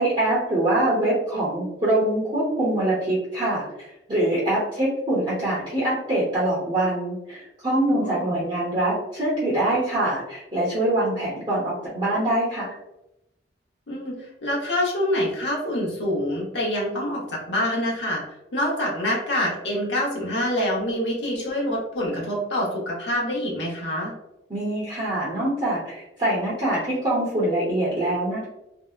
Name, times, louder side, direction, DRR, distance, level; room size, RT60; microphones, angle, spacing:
voice 1, 0.0-12.7 24.5-28.4, right 1 dB, 25° right, -10 dB, 0.8 m, -24 dB
voice 2, 7.9-8.4 13.9-14.2 14.4-18.2 18.5-24.1, left 1 dB, 65° left, -3 dB, 0.8 m, -26 dB
2.7 x 2.1 x 2.3 m, 0.87 s
head